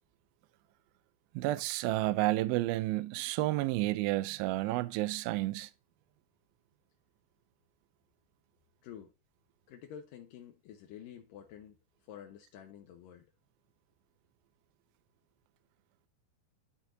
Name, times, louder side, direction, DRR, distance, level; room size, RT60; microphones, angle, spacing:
voice 1, 1.4-5.7, right 17 dB, 90° right, 2.1 m, -31 dB
voice 2, 8.8-9.1 9.7-11.8 12.1-13.3, left 9 dB, 75° left, 2.1 m, -49 dB
11.5 x 4.5 x 3.8 m
omnidirectional pair, 4.8 m